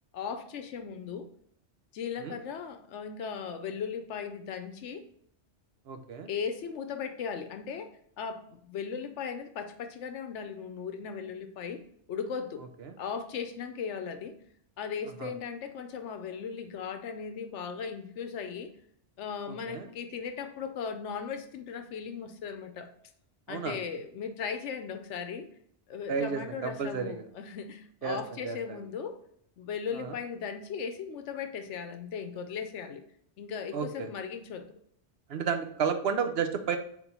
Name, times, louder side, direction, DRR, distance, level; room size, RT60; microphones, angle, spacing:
voice 1, 0.1-1.3 1.9-5.1 6.3-7.9 8.2-12.7 13.0-14.4 14.8-18.7 19.2-22.9 23.5-25.5 25.9-29.2 29.6-33.0 33.4-34.7, left 6 dB, 75° left, 7 dB, 0.9 m, -37 dB
voice 2, 5.9-6.3 12.8-12.9 15.2-15.3 19.7-19.9 23.5-23.8 26.1-27.2 28.0-28.2 28.4-28.8 29.9-30.1 33.7-34.1 35.3-36.8, right 6 dB, 60° right, 7 dB, 0.9 m, -32 dB
4.4 x 4.2 x 5.3 m, 0.66 s
omnidirectional pair, 1.2 m